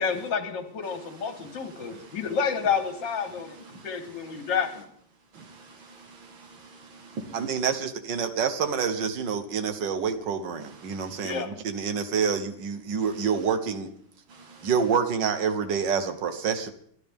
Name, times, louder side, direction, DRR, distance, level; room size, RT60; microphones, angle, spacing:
voice 1, 0.0-4.8 11.2-11.5, left 6 dB, 70° left, 2.3 m, -29 dB
voice 2, 0.8-2.4 2.6-2.7 3.2-4.8 5.2-7.8 10.6-11.4 13.0-13.5 14.3-15.0, right 3 dB, 85° right, 2.4 m, -47 dB
voice 3, 7.3-13.9 14.6-16.7, right 6 dB, 70° right, 1.7 m, -27 dB
23.5 x 10.0 x 3.6 m
omnidirectional pair, 2.1 m